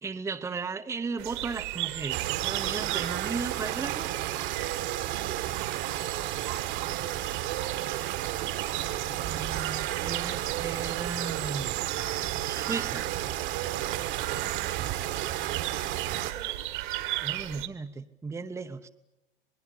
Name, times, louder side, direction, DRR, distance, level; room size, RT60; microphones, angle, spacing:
voice 1, 0.0-4.1 9.1-11.8 12.4-13.1 17.2-18.9, right 4 dB, 10° right, 7 dB, 0.8 m, -36 dB
sound 1, 1.2-17.7, right 16 dB, 55° right, 1.7 m, -35 dB
sound 2, 2.1-16.3, right 13 dB, 40° right, 1.4 m, -33 dB
voice 2, 5.1-6.1 14.9-16.7, right 7 dB, 75° right, 9 dB, 2.8 m, -50 dB
27.0 x 20.0 x 8.5 m, 0.93 s
hypercardioid pair, 100°, 29 cm